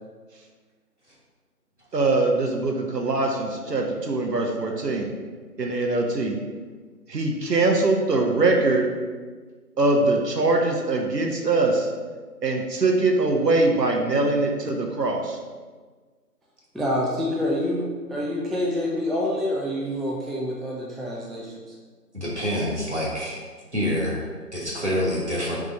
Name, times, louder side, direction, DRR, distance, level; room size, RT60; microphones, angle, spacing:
voice 1, 1.9-5.1 5.6-6.4 7.1-8.9 9.8-11.9 12.4-15.4, right 2 dB, 80° right, 2 dB, 0.8 m, -22 dB
voice 2, 16.7-21.7, left 1 dB, ahead, -3 dB, 0.4 m, -27 dB
voice 3, 22.1-23.4 23.7-24.3 24.5-25.6, equal, 45° right, -5 dB, 1.1 m, -26 dB
3.6 x 3.2 x 3.7 m, 1.4 s
figure-of-eight pair, 180°, 48 cm